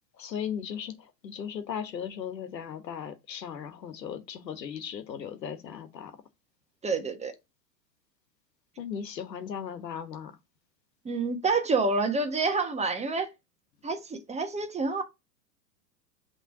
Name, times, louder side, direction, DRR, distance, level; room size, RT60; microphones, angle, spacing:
voice 1, 0.2-6.2 8.8-10.3, left 8 dB, 85° left, 1.3 m, -37 dB
voice 2, 6.8-7.3 11.0-13.3 13.8-15.0, right 3 dB, 15° right, 1.1 m, -28 dB
5.8 x 3.4 x 4.8 m
hypercardioid pair, 110°, 49 cm